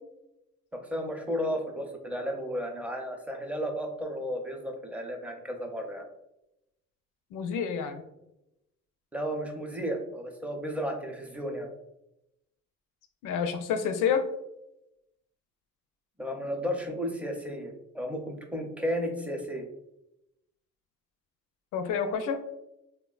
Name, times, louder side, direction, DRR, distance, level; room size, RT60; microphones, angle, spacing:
voice 1, 0.7-6.0 9.1-11.7 16.2-19.7, equal, 5° right, 2 dB, 0.5 m, -33 dB
voice 2, 7.3-8.0 13.2-14.2 21.7-22.4, left 7 dB, 85° left, 7 dB, 0.5 m, -28 dB
3.4 x 2.1 x 2.3 m, 0.86 s
cardioid pair, 90°, 30 cm